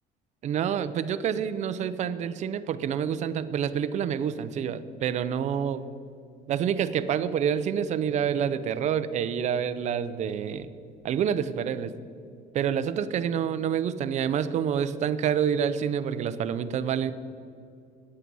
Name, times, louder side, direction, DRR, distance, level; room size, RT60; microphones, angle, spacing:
voice 1, 0.4-5.9 6.5-10.7 11.0-11.9 12.5-17.1, right 8 dB, 45° right, 13 dB, 0.6 m, -27 dB
13.5 x 9.9 x 5.4 m, 2.5 s
cardioid pair, 170°, 16 cm